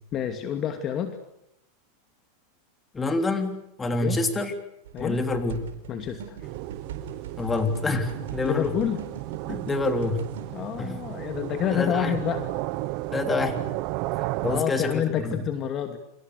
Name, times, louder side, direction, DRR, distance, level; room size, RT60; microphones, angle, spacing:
voice 1, 0.1-1.2 3.9-4.2 4.9-5.2 5.9-6.4 8.4-9.0 10.5-12.5 14.2-16.0, left 9 dB, 35° left, 7 dB, 2.6 m, -28 dB
voice 2, 2.9-4.5 5.0-5.7 7.4-8.7 9.5-10.3 10.8-11.0 11.7-12.1 13.1-13.6 14.4-15.4, left 2 dB, 15° left, 6 dB, 3.5 m, -27 dB
sound 1, 4.8-10.5, right 7 dB, 85° right, 4.6 m, -42 dB
sound 2, 6.4-14.6, right 19 dB, 55° right, 1.1 m, -33 dB
29.5 x 26.0 x 6.7 m, 0.79 s
supercardioid pair, 125°, 0 cm